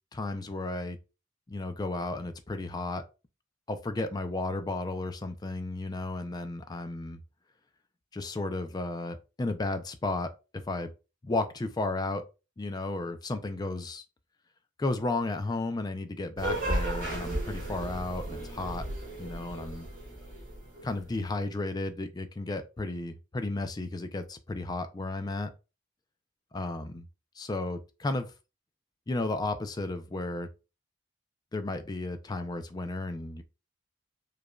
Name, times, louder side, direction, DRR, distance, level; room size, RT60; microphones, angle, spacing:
voice 1, 0.1-1.0 1.5-3.0 3.7-7.2 8.1-10.3 10.7-10.9 11.2-12.2 12.6-14.0 14.8-18.8 19.2-19.9 20.8-25.5 26.5-27.1 27.4-28.3 29.1-30.5 31.5-33.4, left 2 dB, 20° left, 0.4 m, -33 dB
sound 1, 16.4-21.0, right 1 dB, 45° right, 2.2 m, -34 dB
4.8 x 2.5 x 2.2 m
head